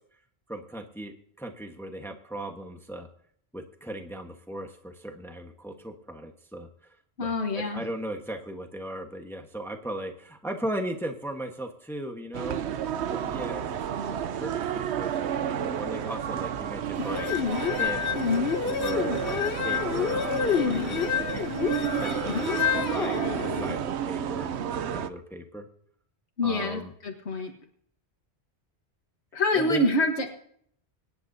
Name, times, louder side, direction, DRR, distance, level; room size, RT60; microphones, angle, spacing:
voice 1, 0.5-3.1 3.5-12.6 13.1-17.3 17.8-18.0 18.6-20.2 20.6-21.5 21.8-25.7 26.4-26.9 29.5-29.9, right 1 dB, ahead, 4 dB, 1.2 m, -37 dB
voice 2, 7.2-7.8 26.4-27.5 29.3-30.3, left 1 dB, 90° left, 3 dB, 1.7 m, -26 dB
sound 1, 12.3-25.1, right 9 dB, 90° right, 1.0 m, -31 dB
sound 2, 17.0-23.8, left 8 dB, 65° left, 0.9 m, -28 dB
25.0 x 10.5 x 2.7 m, 0.65 s
omnidirectional pair, 1.1 m